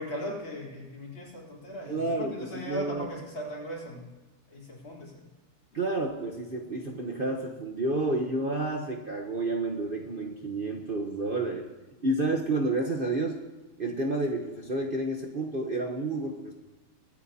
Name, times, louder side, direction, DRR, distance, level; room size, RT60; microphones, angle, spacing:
voice 1, 0.0-4.1 4.5-5.3, equal, 60° left, -4 dB, 4.3 m, -38 dB
voice 2, 1.9-3.1 5.7-11.7 12.0-13.4 13.8-16.5, right 2 dB, 45° right, 1 dB, 0.7 m, -30 dB
23.5 x 9.2 x 2.8 m, 1.2 s
omnidirectional pair, 2.4 m